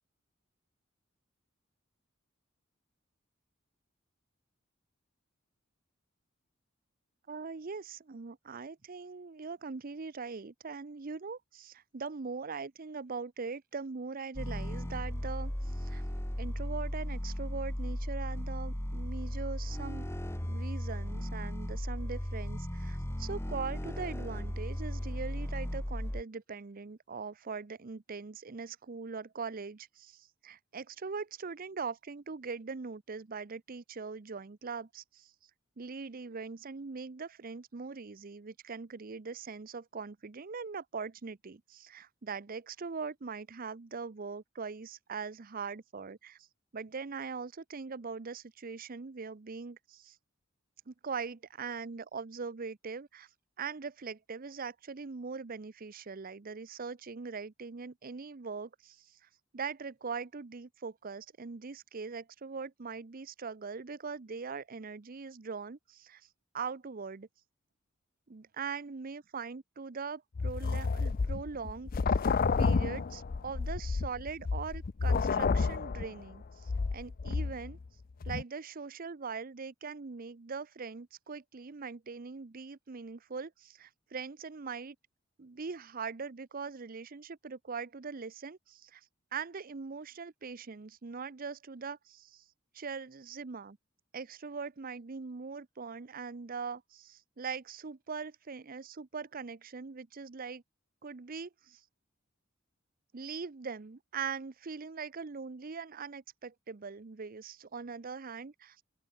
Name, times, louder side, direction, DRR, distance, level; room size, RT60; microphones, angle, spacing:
voice 1, 7.3-16.0 16.4-20.0 20.5-35.3 35.8-46.4 46.7-50.2 50.9-53.3 53.6-59.2 59.5-66.2 66.5-67.3 68.3-71.9 72.6-77.8 78.2-85.0 85.4-89.0 89.3-92.4 92.7-93.8 94.1-100.6 101.0-101.8 103.1-108.8, right 5 dB, 45° right, 0.7 m, -41 dB
sound 1, 14.3-26.2, equal, 15° left, 1.4 m, -36 dB
sound 2, 70.4-77.9 78.2-78.4, left 4 dB, 45° left, 0.5 m, -30 dB
open air
head